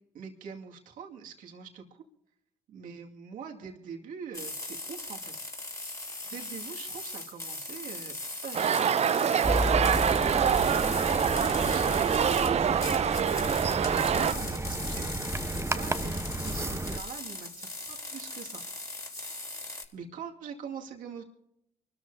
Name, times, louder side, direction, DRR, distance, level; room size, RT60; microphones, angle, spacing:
voice 1, 0.1-2.0 2.7-5.3 6.3-8.1 8.4-9.2 11.6-15.1 15.5-18.6 19.2-21.2, right 6 dB, 75° right, 1 dB, 2.2 m, -44 dB
sound 1, 4.3-19.9, left 2 dB, 20° left, 3.7 m, -39 dB
sound 2, 8.5-14.3, right 8 dB, 50° right, 0.6 m, -25 dB
sound 3, 9.4-17.0, right 1 dB, 20° right, 1.0 m, -32 dB
25.0 x 13.5 x 2.8 m, 0.81 s
supercardioid pair, 55°, 14 cm